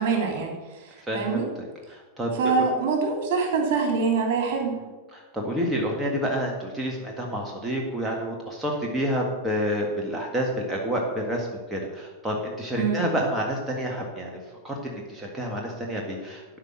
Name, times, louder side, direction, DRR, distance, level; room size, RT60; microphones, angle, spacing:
voice 1, 0.0-1.4 2.3-4.8 12.7-13.0, right 5 dB, 50° right, 2 dB, 3.1 m, -25 dB
voice 2, 1.1-2.7 5.1-14.4 14.6-16.6, equal, 10° right, -1 dB, 1.8 m, -29 dB
12.0 x 5.6 x 7.7 m, 1.2 s
figure-of-eight pair, 90°, 0 cm